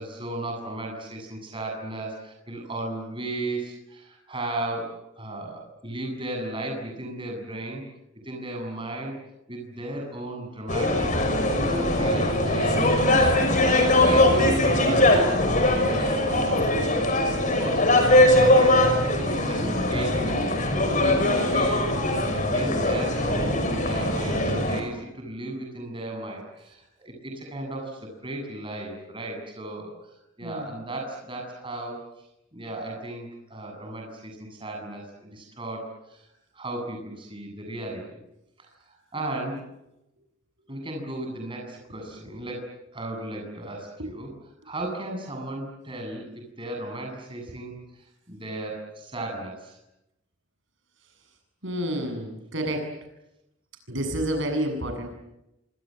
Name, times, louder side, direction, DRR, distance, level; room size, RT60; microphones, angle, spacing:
voice 1, 0.0-7.8 8.2-9.2 9.5-11.1 11.7-16.9 17.6-20.6 20.9-21.8 22.2-30.1 30.4-32.0 32.5-36.3 36.5-38.2 38.6-39.6 40.7-44.3 44.6-49.8, right 1 dB, 25° right, 2 dB, 7.9 m, -35 dB
sound 1, 10.7-24.8, left 1 dB, 35° left, 6.2 m, -21 dB
voice 2, 30.4-30.7 51.6-52.9 53.9-55.1, right 1 dB, 60° right, 5 dB, 7.5 m, -29 dB
28.0 x 26.5 x 7.9 m, 0.88 s
head